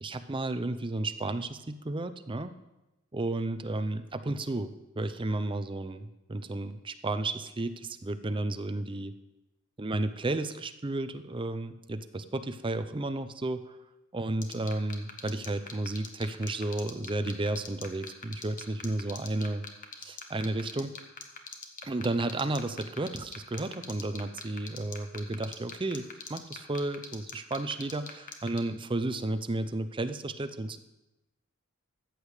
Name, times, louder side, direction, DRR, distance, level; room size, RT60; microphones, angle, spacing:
voice 1, 0.0-2.5 3.1-9.2 9.8-13.8 14.1-19.6 20.0-21.0 21.8-30.8, right 2 dB, 25° right, 10 dB, 0.6 m, -33 dB
sound 1, 14.4-28.6, left 6 dB, 40° left, 1.2 m, -40 dB
14.0 x 8.4 x 4.9 m, 0.97 s
head